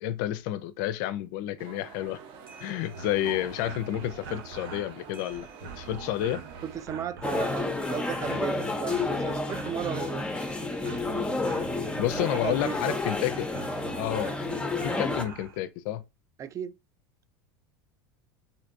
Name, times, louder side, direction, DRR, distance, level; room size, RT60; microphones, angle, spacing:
voice 1, 0.0-2.2 2.6-5.5 5.8-6.4 12.0-13.5 14.0-14.3 14.8-16.0, left 13 dB, 60° left, 0.4 m, -30 dB
sound 1, 1.6-6.9, right 6 dB, 50° right, 0.8 m, -47 dB
sound 2, 2.3-15.6, right 6 dB, 85° right, 0.8 m, -44 dB
voice 2, 6.6-10.3 12.2-13.0 16.4-16.7, right 8 dB, 30° right, 0.4 m, -35 dB
sound 3, 7.2-15.2, left 3 dB, 10° left, 0.6 m, -30 dB
3.4 x 2.7 x 2.6 m
hypercardioid pair, 90°, 11 cm